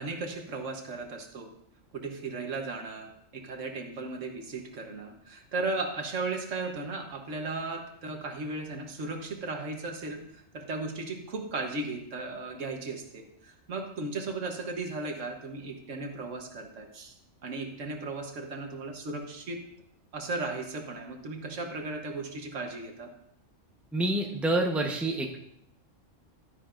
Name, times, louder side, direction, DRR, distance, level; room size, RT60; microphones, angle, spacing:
voice 1, 0.0-1.5 1.9-17.2 17.4-19.6 20.1-23.1, right 3 dB, 80° right, 4 dB, 1.5 m, -36 dB
voice 2, 23.9-25.4, right 1 dB, ahead, 2 dB, 0.8 m, -28 dB
12.0 x 9.8 x 2.5 m, 0.73 s
omnidirectional pair, 1.3 m